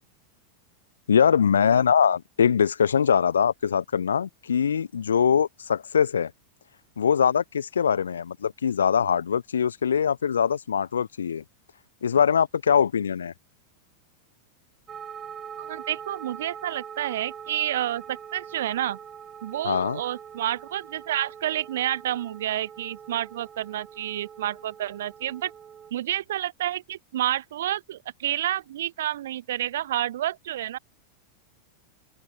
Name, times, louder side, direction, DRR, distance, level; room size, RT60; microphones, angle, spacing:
voice 1, 1.1-6.3 7.0-11.4 12.0-13.3 19.6-20.0, left 7 dB, 70° left, 1.0 m, -22 dB
sound 1, 14.9-25.9, right 8 dB, 25° right, 6.5 m, -43 dB
voice 2, 15.6-19.0 19.4-25.5 25.9-30.8, right 12 dB, 60° right, 0.3 m, -29 dB
open air
figure-of-eight pair, 90°, 0 cm